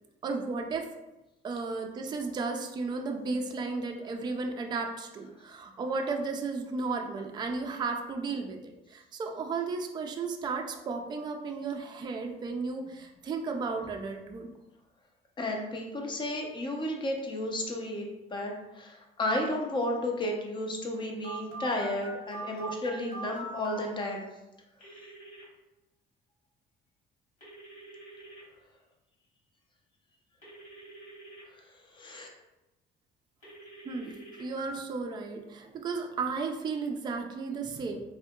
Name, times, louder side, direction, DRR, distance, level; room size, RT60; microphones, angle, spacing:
voice 1, 0.2-0.9 1.4-14.5 33.8-38.0, right 4 dB, 25° right, 3 dB, 0.3 m, -34 dB
voice 2, 15.4-24.2 31.9-32.3, left 1 dB, 30° left, 1 dB, 0.6 m, -33 dB
Telephone, 21.2-23.8 24.8-25.4 27.4-28.4 30.4-31.4 33.4-34.7, right 2 dB, 50° left, 1.5 m, -44 dB
3.6 x 2.6 x 2.3 m, 0.99 s
cardioid pair, 110°, 17 cm